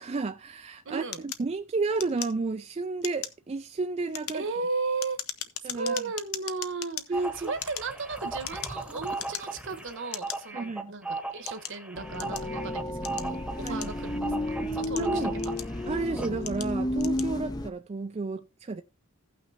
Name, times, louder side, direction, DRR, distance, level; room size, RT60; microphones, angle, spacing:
voice 1, 0.0-4.4 5.6-6.0 7.1-7.5 10.5-10.9 13.6-13.9 15.0-15.4 15.9-18.8, right 3 dB, 30° right, 0.4 m, -32 dB
voice 2, 0.8-1.2 4.3-5.2 5.6-15.5 17.3-17.5, right 4 dB, 60° right, 1.2 m, -35 dB
sound 1, 1.1-2.7 3.0-3.4 4.0-7.1 7.5-8.8 9.1-9.7 10.1-10.4 11.0-12.5 13.0-14.2 14.7-15.9 16.4-16.7 17.0-17.3, left 10 dB, 75° left, 0.8 m, -38 dB
sound 2, 7.1-15.8 16.2-16.3, right 3 dB, 5° right, 1.0 m, -37 dB
sound 3, 12.0-17.7, left 1 dB, 20° left, 0.6 m, -32 dB
16.0 x 6.0 x 2.8 m
head